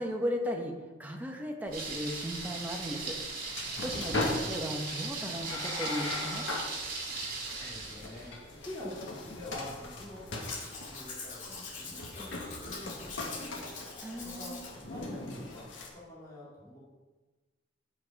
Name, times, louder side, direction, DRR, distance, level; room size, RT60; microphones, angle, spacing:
voice 1, 0.0-3.2 3.8-6.5 14.0-14.6, equal, 10° right, 2 dB, 1.1 m, -36 dB
sound 1, 1.7-15.9, left 2 dB, 75° left, 1.7 m, -40 dB
Thunder, 1.7-8.3, right 3 dB, 50° right, 2.8 m, -38 dB
voice 2, 7.5-13.6 13.9-16.8, left 1 dB, 20° left, -8 dB, 2.8 m, -47 dB
Domestic sounds home sounds, 10.4-14.7 15.1-15.2, left 4 dB, 40° left, 2.1 m, -44 dB
10.5 x 6.1 x 5.2 m, 1.3 s
head